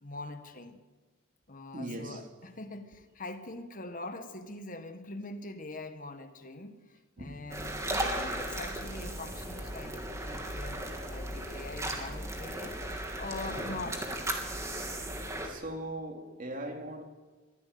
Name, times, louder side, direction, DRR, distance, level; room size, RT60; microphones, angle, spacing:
voice 1, 0.0-0.8 1.5-14.1, left 2 dB, 40° left, 1.7 m, -43 dB
voice 2, 1.7-2.3 7.2-7.3 15.4-17.0, right 1 dB, 45° right, 2.8 m, -39 dB
sound 1, 7.5-15.5, right 1 dB, 15° right, 3.0 m, -36 dB
23.5 x 15.0 x 9.5 m
head